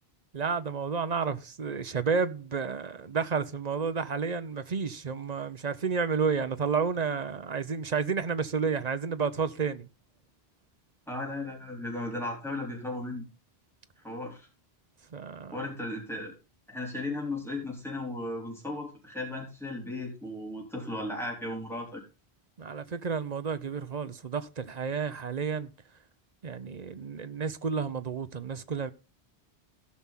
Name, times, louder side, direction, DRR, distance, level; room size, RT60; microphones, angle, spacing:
voice 1, 0.3-9.9 15.1-15.7 22.6-25.7 26.4-28.9, right 5 dB, 45° right, 0.8 m, -31 dB
voice 2, 11.1-13.3 14.0-14.5 15.5-16.3 16.7-22.0, left 2 dB, ahead, 4.1 m, -36 dB
17.0 x 6.0 x 3.6 m
omnidirectional pair, 1.1 m